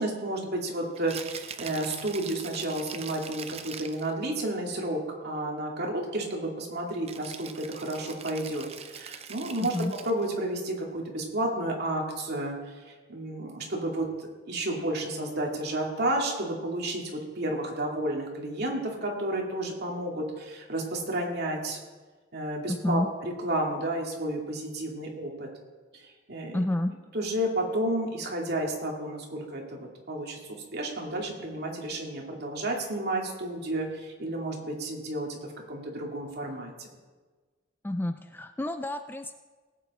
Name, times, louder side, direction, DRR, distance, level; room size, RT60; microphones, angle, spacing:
voice 1, 0.0-9.7 10.0-21.8 22.3-25.5 26.0-26.6 27.1-35.4 35.7-36.9, right 1 dB, 55° right, 0 dB, 2.4 m, -31 dB
Rattle (instrument), 1.0-4.1 7.1-10.3, right 7 dB, 30° right, 0.7 m, -42 dB
voice 2, 9.6-9.9 22.7-23.1 26.5-26.9 37.8-39.4, left 1 dB, 10° left, 8 dB, 0.4 m, -29 dB
18.5 x 8.4 x 4.2 m, 1.3 s
head